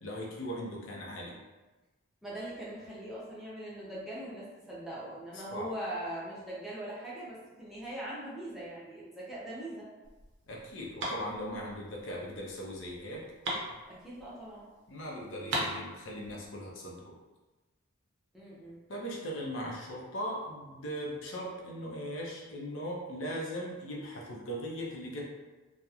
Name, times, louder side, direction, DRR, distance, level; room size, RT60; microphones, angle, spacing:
voice 1, 0.0-1.3 5.5-5.7 10.5-13.2 14.9-17.1 18.9-25.3, equal, 65° left, -3 dB, 0.5 m, -39 dB
voice 2, 2.2-9.9 13.9-14.7 18.3-18.8, right 1 dB, ahead, -8 dB, 0.5 m, -41 dB
sound 1, 10.0-14.6 14.9-15.0 15.2-16.5, right 1 dB, 55° right, 0.5 m, -38 dB
2.9 x 2.0 x 2.3 m, 1.2 s
head